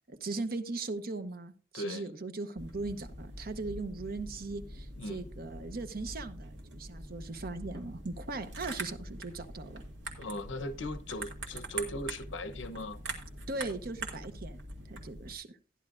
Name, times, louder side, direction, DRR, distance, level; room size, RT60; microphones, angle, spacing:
voice 1, 0.1-9.8 13.5-14.6 14.9-15.5, right 3 dB, 50° right, 0.9 m, -39 dB
voice 2, 1.7-2.1 5.0-5.3 10.2-13.0, left 1 dB, 80° left, 0.9 m, -38 dB
sound 1, 2.6-15.3, right 2 dB, 85° right, 2.1 m, -43 dB
14.0 x 10.5 x 2.5 m
head